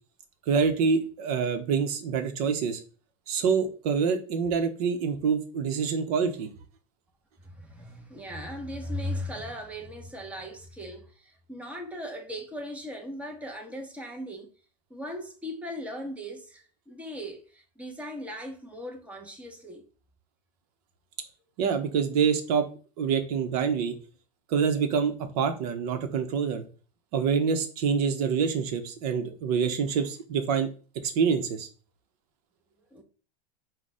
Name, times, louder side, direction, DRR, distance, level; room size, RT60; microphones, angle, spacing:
voice 1, 0.5-2.8 3.3-6.5 21.6-22.7 23.0-23.9 24.5-26.6 27.1-30.7 31.0-31.7, right 6 dB, 65° right, 0.9 m, -26 dB
voice 2, 7.5-14.5 14.9-19.8 32.9-33.0, equal, 5° right, 0.9 m, -38 dB
4.8 x 2.3 x 4.2 m
supercardioid pair, 130°, 21 cm